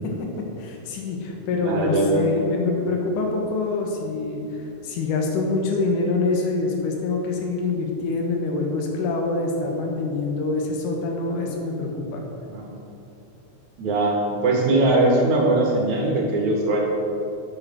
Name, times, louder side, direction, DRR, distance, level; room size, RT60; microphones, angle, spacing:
voice 1, 0.6-12.2, left 3 dB, 70° left, 1 dB, 2.9 m, -25 dB
voice 2, 1.6-2.3 12.5-12.7 13.8-16.8, right 2 dB, 60° right, -1 dB, 3.0 m, -21 dB
9.1 x 8.2 x 7.7 m, 2.8 s
omnidirectional pair, 3.9 m